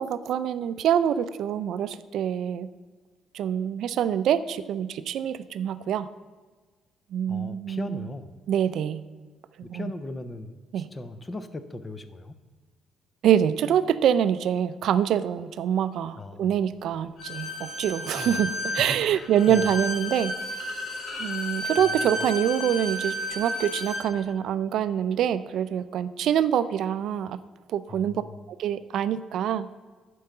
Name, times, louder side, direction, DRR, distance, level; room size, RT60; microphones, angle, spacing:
voice 1, 0.0-2.7 3.3-6.1 7.1-8.1 8.5-9.0 9.7-9.9 10.7-10.9 13.2-20.3 21.2-27.4 27.7-28.2 28.5-29.7, right 9 dB, 60° right, 13 dB, 0.4 m, -25 dB
voice 2, 7.3-8.4 9.6-12.4 16.2-16.6 18.2-18.4 18.8-19.6 27.9-28.3, left 2 dB, 15° left, 11 dB, 0.5 m, -38 dB
Bowed string instrument, 17.2-24.1, left 1 dB, 50° left, 1.4 m, -32 dB
10.5 x 4.6 x 6.5 m, 1.4 s
cardioid pair, 170°, 0 cm